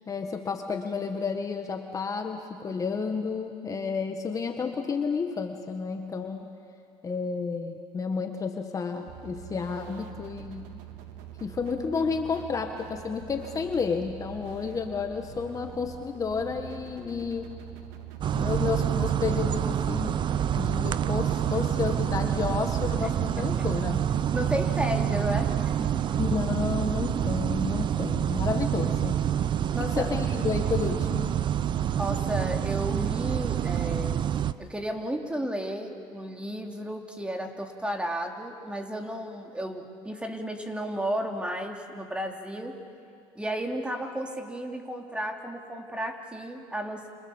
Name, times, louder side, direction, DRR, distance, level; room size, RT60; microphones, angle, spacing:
voice 1, 0.1-6.5 7.0-10.8 11.4-17.5 18.3-20.2 20.6-24.1 26.2-29.2 29.8-31.3, left 5 dB, 30° left, 5 dB, 1.6 m, -31 dB
sound 1, 9.1-23.6, right 10 dB, 85° right, 2.1 m, -44 dB
sound 2, 18.2-34.5, right 10 dB, 45° right, 0.8 m, -27 dB
voice 2, 23.3-23.7 24.3-26.0 29.7-30.1 32.0-34.3 34.6-42.8 43.3-47.1, equal, 10° right, 3 dB, 3.1 m, -33 dB
29.5 x 28.0 x 7.2 m, 2.4 s
supercardioid pair, 105°, 11 cm